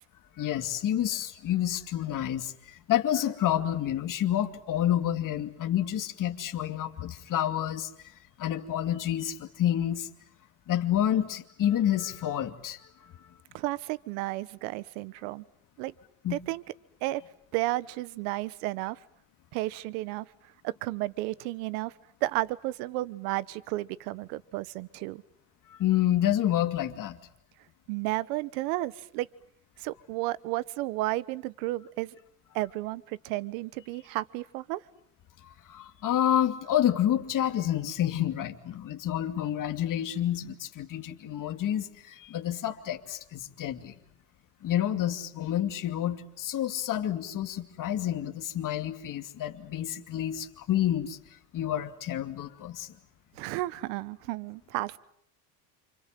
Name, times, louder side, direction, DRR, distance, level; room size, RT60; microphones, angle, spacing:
voice 1, 0.4-7.9 8.4-10.1 10.7-12.8 16.2-16.4 25.7-27.2 35.4-43.9 44.6-51.2 51.5-52.9, left 11 dB, 45° left, 5 dB, 2.7 m, -29 dB
voice 2, 13.5-15.4 15.8-15.9 16.3-16.6 17.0-17.2 17.5-19.0 19.5-20.3 20.6-21.9 22.2-25.2 27.9-29.3 29.8-32.1 32.5-34.8 53.4-55.0, right 18 dB, 85° right, 18 dB, 1.2 m, -32 dB
29.0 x 27.0 x 7.6 m, 0.70 s
cardioid pair, 120°, 44 cm